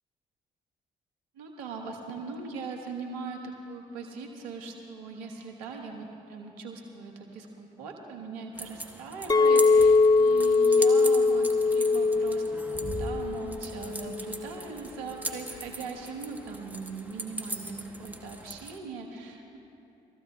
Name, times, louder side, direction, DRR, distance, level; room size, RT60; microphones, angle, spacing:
voice 1, 1.3-19.6, right 4 dB, 85° right, 2 dB, 1.3 m, -40 dB
sound 1, 8.6-18.8, right 1 dB, 10° right, 1.6 m, -40 dB
Chink clink, 9.3-13.6 14.0-14.4, left 4 dB, 20° left, 0.5 m, -22 dB
23.0 x 14.5 x 2.8 m, 2.7 s
hypercardioid pair, 50°, 19 cm